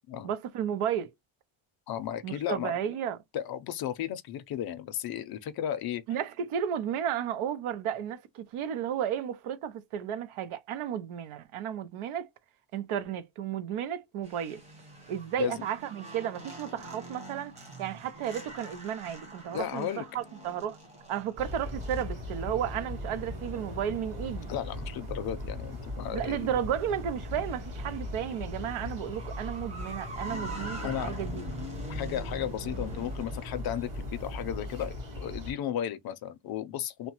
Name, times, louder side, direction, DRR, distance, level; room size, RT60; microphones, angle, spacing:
voice 1, 0.2-1.1 2.2-3.2 6.1-12.3 12.7-14.6 15.1-17.5 17.8-20.8 21.1-24.5 26.1-31.4, right 9 dB, 80° right, 0.7 m, -33 dB
voice 2, 1.9-2.8 3.3-6.0 15.4-15.6 19.5-20.1 24.5-26.5 30.8-31.2 31.9-37.1, left 10 dB, 50° left, 0.5 m, -34 dB
sound 1, 14.2-33.4, right 2 dB, 15° right, 0.8 m, -46 dB
sound 2, 21.4-35.5, left 1 dB, 40° right, 1.7 m, -39 dB
3.0 x 2.1 x 2.8 m
cardioid pair, 180°, 49 cm